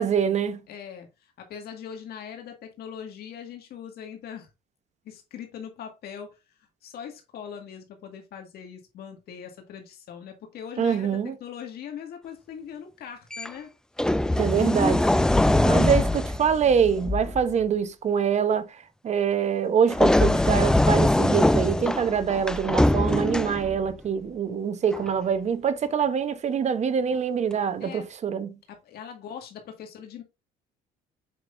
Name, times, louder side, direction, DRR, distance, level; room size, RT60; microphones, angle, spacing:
voice 1, 0.0-0.6 10.8-11.3 14.4-15.0 15.6-28.6, right 7 dB, 40° right, 1.0 m, -25 dB
voice 2, 0.7-4.5 5.0-13.7 27.8-28.1 28.7-30.2, left 8 dB, 65° left, 2.0 m, -41 dB
sound 1, 13.3-13.5 14.0-17.4 19.9-23.9 24.9-25.1, left 1 dB, 5° left, 0.3 m, -22 dB
7.7 x 6.1 x 2.6 m
cardioid pair, 110°, 17 cm